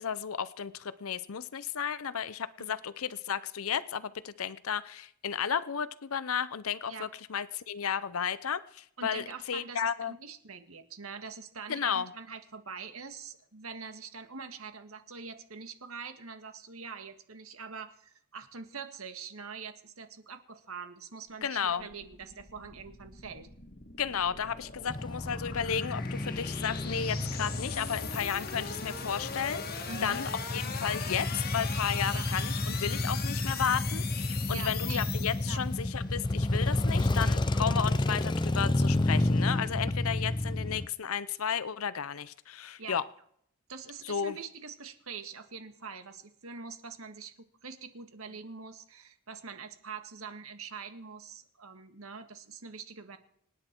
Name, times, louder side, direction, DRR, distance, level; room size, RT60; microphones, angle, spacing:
voice 1, 0.0-10.1 11.7-12.1 21.4-21.9 24.0-43.0 44.0-44.3, left 7 dB, 75° left, 16 dB, 0.6 m, -33 dB
voice 2, 9.0-23.5 29.9-30.2 32.1-32.3 34.5-35.0 35.5-35.6 42.8-43.0 43.7-47.3 47.6-53.2, right 5 dB, 75° right, 8 dB, 1.7 m, -44 dB
sound 1, 21.3-35.9, left 6 dB, 45° left, 1.7 m, -40 dB
Male speech man speaking / Motorcycle / Idling, 24.9-40.9, left 2 dB, 20° left, 0.5 m, -31 dB
26.0 x 10.0 x 4.5 m, 0.70 s
head